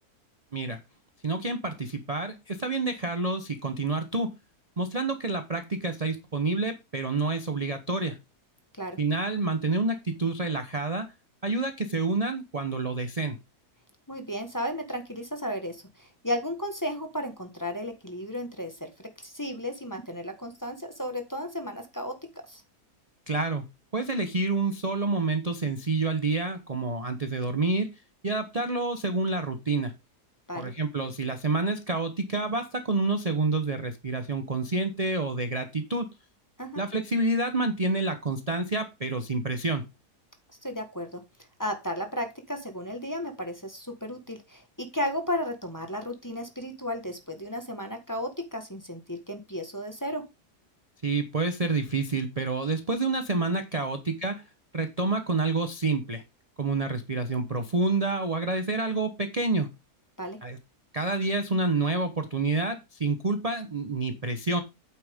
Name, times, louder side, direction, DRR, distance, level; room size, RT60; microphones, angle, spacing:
voice 1, 1.2-4.3 4.8-8.2 9.0-11.1 11.4-13.3 23.3-23.7 23.9-27.9 28.2-29.9 30.5-36.1 36.8-39.8 51.0-54.4 54.7-56.2 56.6-59.7 60.4-60.6 60.9-64.6, right 3 dB, 30° right, 8 dB, 0.9 m, -28 dB
voice 2, 14.1-22.6 30.5-30.7 36.6-36.8 40.6-41.2 41.6-50.2 60.2-60.4, equal, 10° left, 5 dB, 1.4 m, -34 dB
9.1 x 7.3 x 3.6 m, 0.24 s
omnidirectional pair, 1.7 m